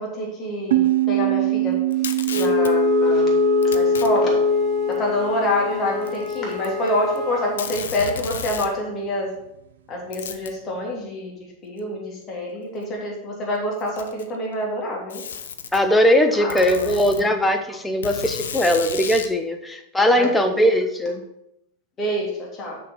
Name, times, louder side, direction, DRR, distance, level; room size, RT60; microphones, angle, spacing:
voice 1, 0.0-1.8 2.3-3.3 3.7-4.3 4.9-9.3 9.9-15.2 16.4-17.3 20.1-20.5 22.0-22.8, left 1 dB, 30° left, -2 dB, 3.1 m, -27 dB
sound 1, 0.7-6.0, right 16 dB, 60° right, 0.5 m, -25 dB
Packing tape duct tape, 1.9-2.7 3.6-4.1 4.9-5.0 6.0-6.9 7.2-7.3 7.6-8.7 10.1-10.6 11.8-11.9 12.8-12.9 13.7-14.4 15.1-15.8 16.5-17.2 18.0-19.3, left 7 dB, 65° left, 0.7 m, -33 dB
Wind instrument woodwind instrument, 2.3-7.6, left 4 dB, 10° right, 2.8 m, -22 dB
voice 2, 15.7-21.2, equal, 5° left, 5 dB, 1.1 m, -20 dB
6.9 x 5.8 x 6.7 m, 0.81 s
figure-of-eight pair, 90°, 0 cm